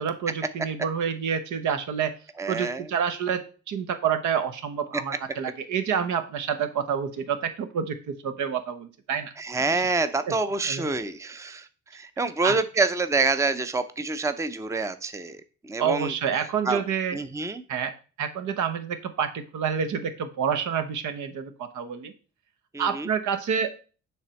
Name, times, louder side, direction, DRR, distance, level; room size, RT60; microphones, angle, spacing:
voice 1, 0.0-2.1 2.5-9.3 9.6-9.9 10.3-10.4 10.6-10.9 12.4-12.6 15.8-17.2 17.7-17.9 18.2-22.1 22.8-23.7, right 7 dB, 75° right, 9 dB, 1.0 m, -28 dB
voice 2, 2.4-2.9 9.4-11.7 11.9-15.4 15.6-16.1 16.6-16.8 17.1-17.6 22.7-23.1, right 3 dB, 10° right, 11 dB, 0.6 m, -27 dB
7.2 x 3.4 x 6.3 m, 0.37 s
cardioid pair, 90°, 30 cm